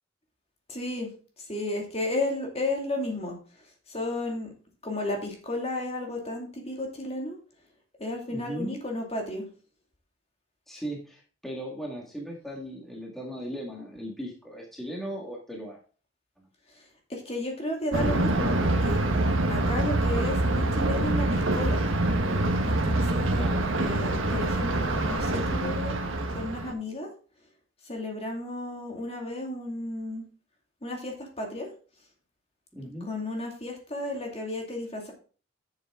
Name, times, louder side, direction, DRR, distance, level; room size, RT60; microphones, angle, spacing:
voice 1, 0.7-4.5 4.8-7.4 8.0-9.5 16.7-16.8 17.1-19.0 19.5-21.8 22.7-23.5 23.8-26.0 26.3-27.1 27.8-30.2 30.8-31.7 33.0-35.1, left 1 dB, 30° left, 1 dB, 2.3 m, -33 dB
voice 2, 8.3-8.8 10.7-15.8 23.3-23.7 32.7-33.1, equal, ahead, -2 dB, 1.9 m, -37 dB
Thunder, 17.9-26.7, right 2 dB, 90° right, 1.3 m, -25 dB
9.7 x 7.3 x 3.7 m, 0.39 s
head